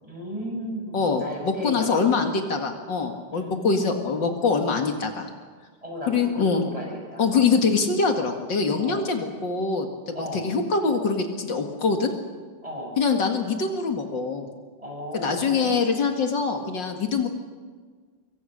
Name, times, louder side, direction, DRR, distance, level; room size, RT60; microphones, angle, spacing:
voice 1, 0.0-2.3 3.3-4.1 5.8-7.2 8.8-9.1 10.1-10.5 12.6-13.0 14.8-15.9, equal, 15° right, -1 dB, 7.7 m, -35 dB
voice 2, 0.9-5.3 6.1-6.7 7.2-12.1 13.0-14.5 15.1-17.3, left 4 dB, 75° left, 4 dB, 2.6 m, -24 dB
26.0 x 23.5 x 6.6 m, 1.5 s
omnidirectional pair, 2.0 m